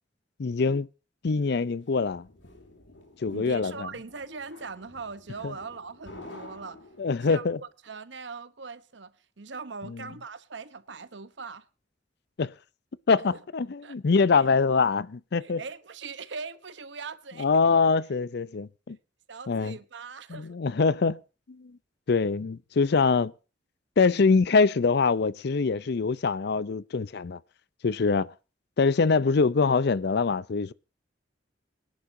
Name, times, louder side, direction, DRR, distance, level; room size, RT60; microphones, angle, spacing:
voice 1, 0.4-0.9 1.2-2.3 3.2-3.9 5.4-5.5 7.0-7.6 12.4-12.5 13.1-15.6 17.4-19.0 19.5-19.8 20.3-21.2 21.6-21.7 22.1-23.3 24.0-27.4 27.8-28.3 28.8-30.7, left 4 dB, 60° left, 0.5 m, -24 dB
sound 1, 1.6-7.4, left 1 dB, 80° left, 3.0 m, -49 dB
voice 2, 3.3-6.8 7.2-11.7 13.3-13.4 13.8-14.0 15.4-17.6 19.3-20.6, right 4 dB, 70° right, 0.9 m, -41 dB
24.0 x 10.5 x 2.7 m
head